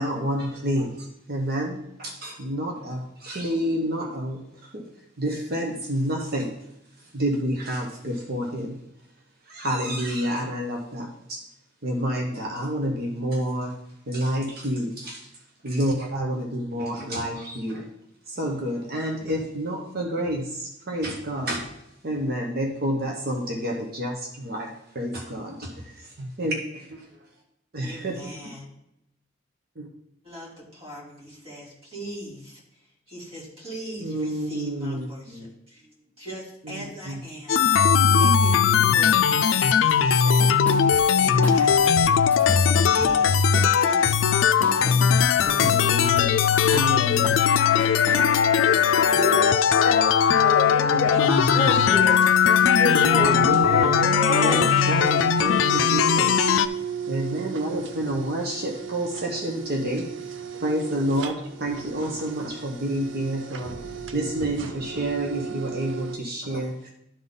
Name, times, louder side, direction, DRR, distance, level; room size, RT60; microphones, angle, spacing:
voice 1, 0.0-4.4 4.7-4.9 5.2-6.5 7.1-8.8 9.5-11.4 11.8-13.7 14.1-15.2 15.6-17.9 18.3-21.6 22.0-24.7 24.9-27.1 27.7-28.2 29.8-29.9 34.0-35.4 36.7-37.2 38.8-39.0 41.2-42.0 43.1-43.2 45.4-46.3 46.7-47.4 51.3-51.6 52.9-56.5 57.1-60.1 60.6-63.7 64.1-66.9, right 1 dB, 55° right, 1.1 m, -29 dB
voice 2, 27.8-28.7 30.2-42.3 42.7-47.0 50.7-51.8, left 1 dB, 30° right, 3.0 m, -39 dB
sound 1, 37.5-56.7, left 7 dB, 85° left, 0.4 m, -19 dB
sound 2, 39.9-40.0 40.2-46.3 46.6-48.2, equal, 10° left, 0.8 m, -35 dB
voice 3, 49.1-51.2 51.5-52.2 52.8-54.7, left 2 dB, 40° left, 0.8 m, -28 dB
sound 3, 51.5-66.2, right 7 dB, 85° right, 0.6 m, -34 dB
11.5 x 4.0 x 3.7 m
head